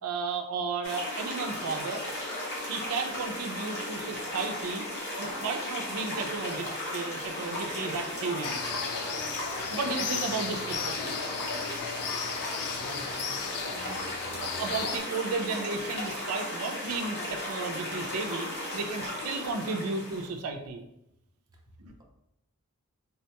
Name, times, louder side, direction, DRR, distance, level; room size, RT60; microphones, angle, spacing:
voice 1, 0.0-2.0 2.6-4.8 5.2-6.7 6.9-8.6 9.0-11.2 14.4-20.8 21.8-21.9, right 4 dB, 80° right, 4 dB, 0.4 m, -34 dB
sound 1, 0.8-20.3, left 1 dB, 55° left, 0.9 m, -36 dB
sound 2, 8.4-15.0, left 7 dB, 75° left, 0.3 m, -36 dB
voice 2, 12.5-14.2 21.5-21.6, right 1 dB, 15° right, -1 dB, 0.5 m, -49 dB
3.4 x 2.2 x 2.8 m, 0.84 s
head